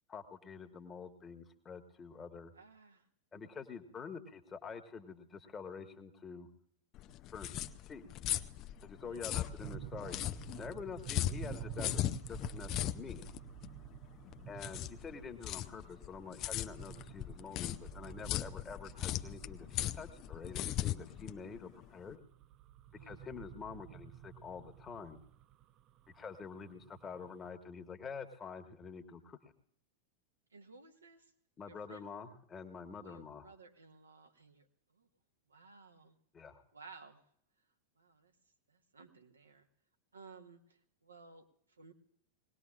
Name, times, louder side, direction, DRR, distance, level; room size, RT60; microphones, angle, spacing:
voice 1, 0.1-2.5 3.3-6.5 7.3-7.5 7.9-8.1 8.8-10.2 10.6-13.2 14.5-22.2 23.0-25.2 26.1-29.4 31.6-33.5 36.3-36.6, left 5 dB, 20° left, 5 dB, 1.4 m, -47 dB
voice 2, 2.5-3.1 9.0-9.3 22.9-23.2 30.5-31.3 31.6-32.1 33.0-35.1 35.5-36.1 36.7-37.2 37.9-38.3 38.7-39.7 40.1-41.9, right 4 dB, 75° right, 4 dB, 1.3 m, -57 dB
sound 1, 6.9-22.1, left 13 dB, 35° left, 0.5 m, -39 dB
sound 2, 9.6-27.5, right 13 dB, 35° right, 0.4 m, -51 dB
21.5 x 18.5 x 2.5 m, 0.67 s
figure-of-eight pair, 90°, 0 cm